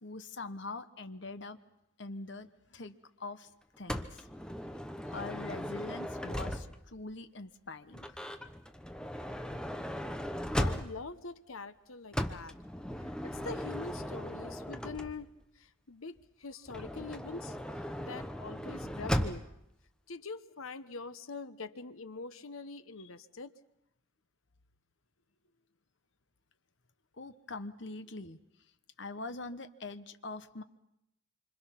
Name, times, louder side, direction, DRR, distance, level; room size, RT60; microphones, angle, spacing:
voice 1, 0.0-1.6 2.0-2.9 3.2-3.5 3.8-4.3 5.1-8.0 27.2-28.4 29.0-30.6, left 3 dB, 60° left, 10 dB, 1.1 m, -43 dB
Motor vehicle (road) / Sliding door, 3.9-7.0 7.9-11.2 12.1-15.4 16.7-19.6, equal, 5° left, 0.9 m, -37 dB
voice 2, 10.6-12.5 13.2-17.6 18.0-19.5 20.1-23.5, left 4 dB, 85° left, 12 dB, 1.1 m, -44 dB
26.5 x 25.5 x 5.9 m, 0.82 s
head